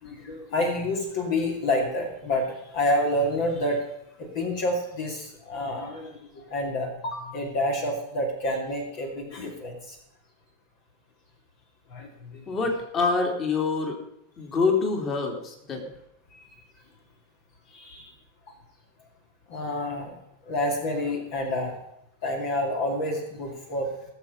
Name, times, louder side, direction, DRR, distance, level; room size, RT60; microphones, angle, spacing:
voice 1, 0.0-3.9 4.2-10.0 11.9-12.4 16.3-16.5 17.7-18.1 19.5-20.2 20.4-21.8 22.2-23.9, left 1 dB, 50° left, 1 dB, 2.5 m, -28 dB
voice 2, 12.5-14.0 14.4-15.8, left 4 dB, 25° left, 2 dB, 3.1 m, -26 dB
18.5 x 7.6 x 5.4 m, 0.81 s
figure-of-eight pair, 90°, 0 cm